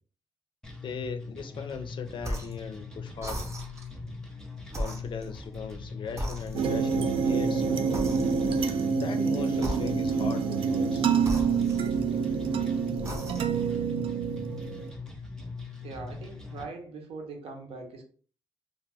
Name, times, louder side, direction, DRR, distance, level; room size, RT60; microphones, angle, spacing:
sound 1, 0.6-16.6, left 4 dB, 5° left, 0.6 m, -41 dB
voice 1, 0.8-3.5 4.8-8.0 8.9-11.1, left 6 dB, 55° left, 7 dB, 0.4 m, -39 dB
sound 2, 2.2-2.6 3.2-4.0 4.7-5.8 6.2-7.0 7.9-8.7 9.6-10.3 11.2-12.3 12.9-13.7, equal, 30° right, 0.7 m, -37 dB
sound 3, 6.5-14.9, right 6 dB, 65° right, 0.4 m, -27 dB
voice 2, 15.8-18.0, right 3 dB, 85° right, 2 dB, 0.7 m, -41 dB
2.3 x 2.2 x 3.3 m, 0.42 s
cardioid pair, 100°, 10 cm